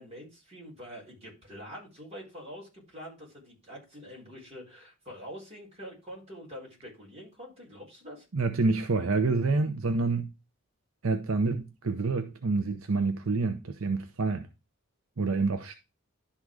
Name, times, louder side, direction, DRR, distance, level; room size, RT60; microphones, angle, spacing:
voice 1, 0.0-8.2, equal, 30° right, 4.4 m, -45 dB
voice 2, 8.3-10.3 11.0-14.5 15.2-15.8, right 3 dB, 75° right, 0.8 m, -27 dB
11.5 x 3.9 x 4.8 m
head